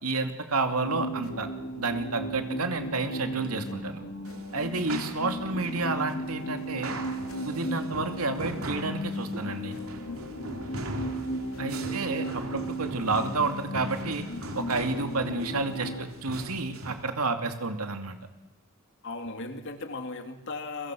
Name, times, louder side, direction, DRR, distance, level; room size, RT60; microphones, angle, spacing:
voice 1, 0.0-1.5 1.8-4.0 4.5-7.0 7.4-9.8 11.6-14.2 14.5-18.2, right 3 dB, 85° right, 6 dB, 2.7 m, -30 dB
sound 1, 0.8-16.1, equal, 80° left, 3.1 m, -36 dB
sound 2, 4.2-17.1, right 2 dB, 70° right, 3.1 m, -40 dB
voice 2, 19.0-20.9, left 3 dB, 55° left, 7 dB, 2.5 m, -37 dB
29.5 x 23.0 x 6.4 m, 1.1 s
head